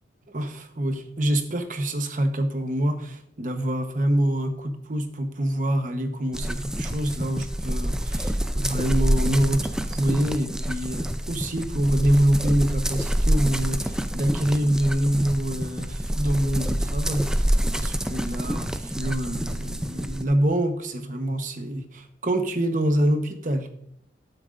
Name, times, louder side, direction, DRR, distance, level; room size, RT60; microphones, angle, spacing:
voice 1, 0.3-17.5 17.7-23.7, right 1 dB, 45° right, 7 dB, 1.0 m, -26 dB
sound 1, 6.3-20.2, equal, 5° right, 0.4 m, -27 dB
12.5 x 9.1 x 2.5 m, 0.70 s
head